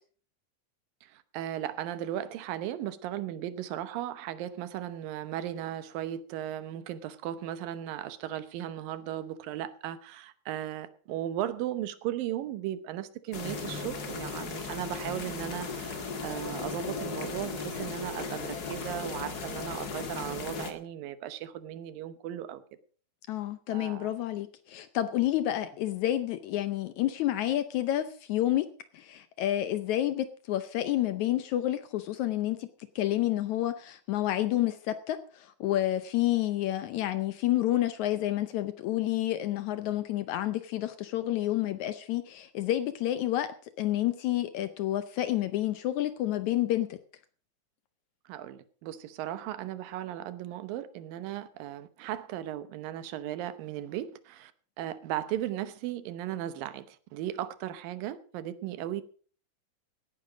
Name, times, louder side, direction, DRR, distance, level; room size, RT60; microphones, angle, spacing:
voice 1, 1.3-22.6 23.7-24.1 48.3-54.5 54.8-59.0, right 12 dB, 85° right, 2.7 m, -36 dB
sound 1, 13.3-20.7, left 4 dB, 40° left, 1.5 m, -36 dB
voice 2, 23.3-28.7 28.9-32.7 33.0-47.0, left 13 dB, 75° left, 1.8 m, -29 dB
17.0 x 9.9 x 5.1 m
omnidirectional pair, 3.9 m